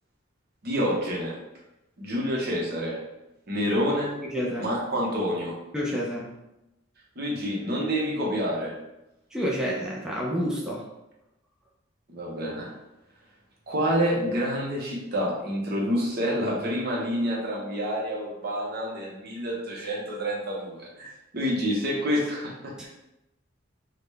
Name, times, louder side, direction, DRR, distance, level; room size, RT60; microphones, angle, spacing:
voice 1, 0.6-1.4 2.0-3.0 3.5-4.1 4.6-5.6 7.2-8.8 12.1-12.7 13.7-22.9, equal, 55° right, -3 dB, 0.9 m, -28 dB
voice 2, 4.3-4.7 5.7-6.3 9.3-10.8 22.8-22.9, equal, 5° right, -4 dB, 0.4 m, -29 dB
3.8 x 2.2 x 3.2 m, 0.91 s
head